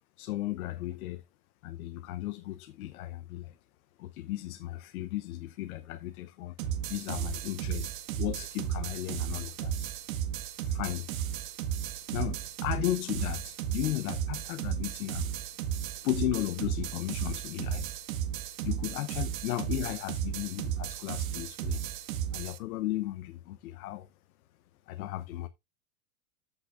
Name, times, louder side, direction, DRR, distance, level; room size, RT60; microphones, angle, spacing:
voice 1, 0.2-1.2 1.6-3.6 4.0-6.6 6.9-9.9 10.6-11.1 12.1-15.4 16.0-17.9 18.6-21.8 22.3-24.1 24.9-25.5, left 15 dB, 70° left, 0.9 m, -35 dB
sound 1, 6.6-22.6, right 9 dB, 65° right, 1.7 m, -34 dB
14.0 x 5.9 x 2.5 m
supercardioid pair, 160°, 44 cm